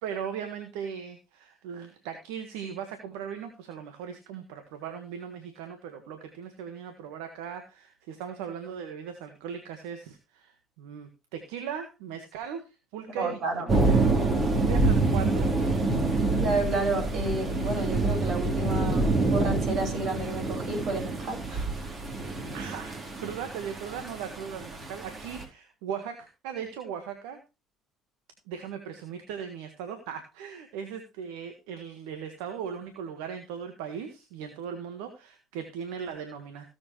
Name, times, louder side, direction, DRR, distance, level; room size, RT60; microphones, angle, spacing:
voice 1, 0.0-13.4 13.8-14.0 14.6-15.5 22.5-27.4 28.5-36.7, right 7 dB, 75° right, 1.5 m, -38 dB
voice 2, 13.2-13.7 16.4-21.8, right 2 dB, 55° right, 6.8 m, -31 dB
sound 1, 13.7-25.4, right 3 dB, 40° right, 4.0 m, -27 dB
17.0 x 7.5 x 3.2 m
hypercardioid pair, 60°, 0 cm